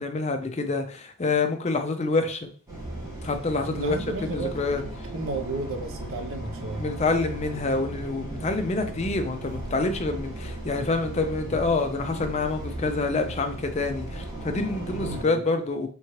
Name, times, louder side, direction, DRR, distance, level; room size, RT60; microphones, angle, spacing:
voice 1, 0.0-2.4 3.2-4.8 6.8-15.9, left 3 dB, 30° left, 6 dB, 0.5 m, -27 dB
sound 1, 2.7-15.2, right 1 dB, 15° right, 1.4 m, -36 dB
voice 2, 3.7-6.9 14.9-15.4, right 2 dB, 60° right, 4 dB, 0.6 m, -34 dB
3.6 x 3.1 x 3.0 m, 0.41 s
head